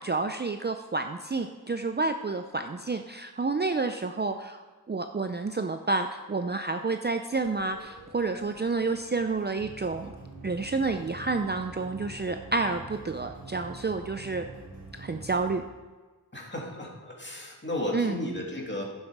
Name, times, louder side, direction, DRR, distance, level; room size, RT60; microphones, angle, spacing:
voice 1, 0.0-4.6 4.9-10.1 10.4-14.4 15.0-15.6 17.9-18.2, right 3 dB, 25° right, 6 dB, 0.5 m, -29 dB
sound 1, 7.3-15.6, right 3 dB, 75° right, 3.2 m, -46 dB
voice 2, 16.3-18.8, left 1 dB, 30° left, -1 dB, 2.5 m, -34 dB
10.5 x 7.8 x 4.8 m, 1.4 s
wide cardioid pair, 65°, 39 cm